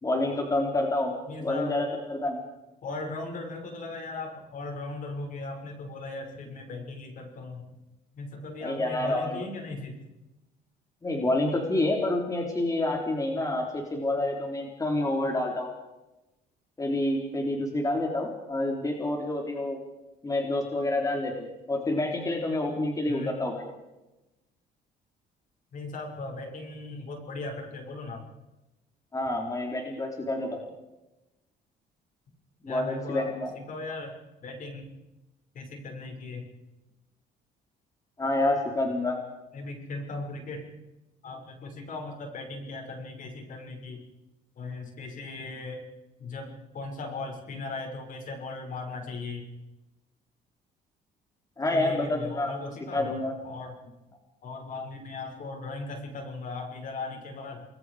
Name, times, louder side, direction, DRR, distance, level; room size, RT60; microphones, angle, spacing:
voice 1, 0.0-2.4 8.6-9.4 11.0-15.7 16.8-19.8 20.2-23.7 29.1-30.6 32.6-33.5 38.2-39.2 51.6-53.3, left 2 dB, 20° left, 2 dB, 3.8 m, -28 dB
voice 2, 1.3-1.7 2.8-7.7 8.1-9.9 23.1-23.3 25.7-28.2 32.7-33.3 33.7-34.1 34.4-34.8 35.5-36.4 39.5-40.6 41.2-44.0 44.6-45.8 46.2-49.5 51.7-53.1 53.4-53.7 54.4-57.7, left 3 dB, 50° left, 3 dB, 6.4 m, -38 dB
29.5 x 21.0 x 5.1 m, 1.0 s
cardioid pair, 110°, 17 cm